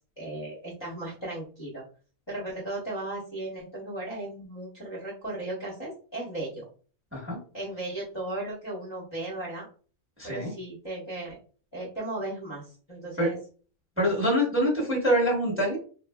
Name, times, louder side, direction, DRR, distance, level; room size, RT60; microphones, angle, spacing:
voice 1, 0.2-1.8 2.3-6.7 7.5-9.7 10.2-11.4 11.7-13.4, right 2 dB, 25° left, -8 dB, 0.7 m, -36 dB
voice 2, 10.2-10.5 13.2-13.3 14.0-15.8, equal, 10° right, -4 dB, 1.0 m, -25 dB
3.3 x 2.4 x 2.2 m, 0.40 s
omnidirectional pair, 1.5 m